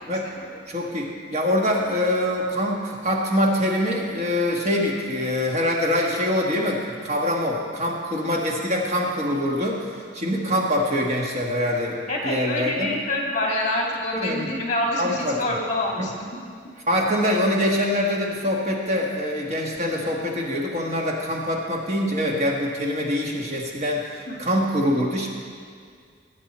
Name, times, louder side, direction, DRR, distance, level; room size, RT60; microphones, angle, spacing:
voice 1, 0.7-12.9 14.1-14.5 15.0-15.4 16.0-16.1 16.9-25.3, left 1 dB, 35° right, -1 dB, 1.6 m, -24 dB
voice 2, 12.1-16.4 24.3-24.4, left 1 dB, 40° left, -2 dB, 2.3 m, -27 dB
19.0 x 8.4 x 4.3 m, 2.1 s
head